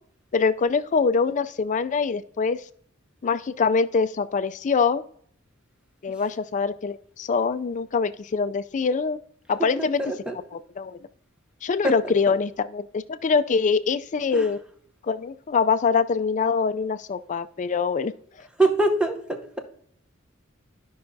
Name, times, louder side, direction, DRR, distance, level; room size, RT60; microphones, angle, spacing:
voice 1, 0.3-2.6 3.2-5.0 6.0-9.2 9.5-10.0 10.5-11.0 11.6-14.6 15.0-18.1, left 5 dB, 40° left, 12 dB, 0.4 m, -24 dB
voice 2, 9.6-10.4 11.8-12.3 14.3-14.5 18.6-19.6, right 2 dB, 5° right, 4 dB, 0.8 m, -25 dB
12.5 x 5.5 x 2.7 m, 0.64 s
head